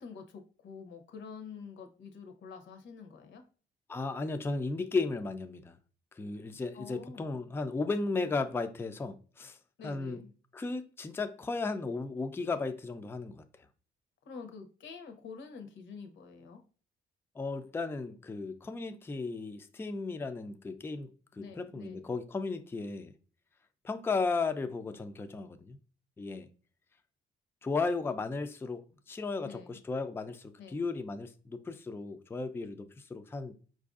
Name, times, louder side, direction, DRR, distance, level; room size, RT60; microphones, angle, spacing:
voice 1, 0.0-3.4 6.7-7.4 9.8-10.3 14.3-16.6 21.4-22.1 29.4-29.8 30.6-30.8, left 5 dB, 70° left, 0.8 m, -47 dB
voice 2, 3.9-5.8 6.1-9.6 9.8-10.2 10.5-13.4 17.4-23.1 23.8-25.8 26.2-26.5 27.6-33.5, left 3 dB, 10° left, 0.3 m, -35 dB
4.5 x 2.5 x 2.4 m
cardioid pair, 90°, 20 cm